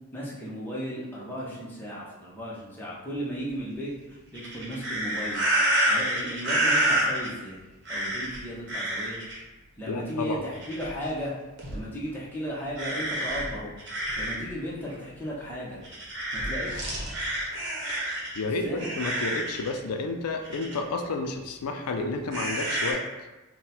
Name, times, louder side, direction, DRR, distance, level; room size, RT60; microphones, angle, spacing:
voice 1, 0.1-5.4 5.9-7.6 7.9-9.2 9.8-11.3 11.7-13.7 14.2-15.8 16.3-16.9 18.4-19.0, equal, 10° left, -7 dB, 0.8 m, -35 dB
sound 1, 4.3-7.3 7.8-8.4 8.7-9.4 10.5-11.1 11.6-11.8 12.8-14.5 14.9-15.0 15.8-18.4 18.8-19.7 20.4-20.8 22.3-22.9, right 1 dB, 50° right, 1.0 m, -28 dB
voice 2, 9.9-10.4 17.9-18.0 18.3-23.1, left 3 dB, 90° left, 5 dB, 0.4 m, -31 dB
4.0 x 2.2 x 4.1 m, 1.1 s
head